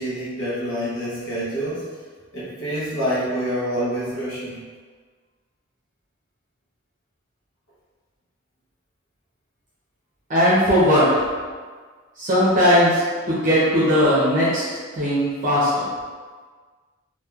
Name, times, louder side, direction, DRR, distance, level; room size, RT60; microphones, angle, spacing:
voice 1, 0.0-1.9 2.3-4.6, equal, 75° left, -10 dB, 0.8 m, -27 dB
voice 2, 10.3-11.1 12.2-14.6 14.9-15.9, equal, 40° right, -9 dB, 0.6 m, -18 dB
2.9 x 2.3 x 2.3 m, 1.5 s
head